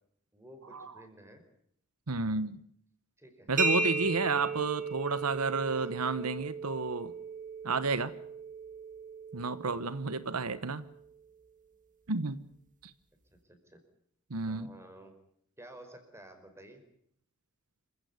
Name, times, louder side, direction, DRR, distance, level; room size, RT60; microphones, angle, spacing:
voice 1, 0.3-1.4 3.2-3.5 4.2-4.6 5.7-6.1 13.3-13.8 14.4-15.1 15.6-16.8, right 1 dB, 10° right, 7 dB, 5.1 m, -53 dB
voice 2, 2.1-2.6 3.5-7.1 7.6-8.1 9.3-10.8 12.1-12.4 14.3-14.7, right 4 dB, 85° right, 14 dB, 1.1 m, -31 dB
sound 1, 3.6-11.1, right 3 dB, 35° right, 2.3 m, -36 dB
27.5 x 16.0 x 9.5 m, 0.68 s
head